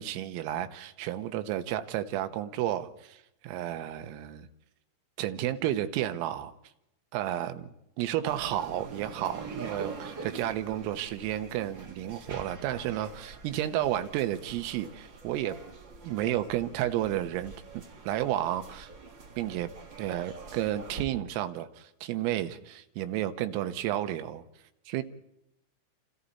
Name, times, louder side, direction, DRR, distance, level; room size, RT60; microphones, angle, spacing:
voice 1, 0.0-4.5 5.2-6.5 7.1-15.6 16.0-18.9 19.4-19.7 20.0-24.4 24.9-25.0, right 12 dB, 85° right, 9 dB, 3.8 m, -32 dB
sound 1, 8.2-21.0, right 4 dB, 65° right, 1.1 m, -45 dB
29.0 x 28.0 x 4.2 m, 0.87 s
omnidirectional pair, 5.8 m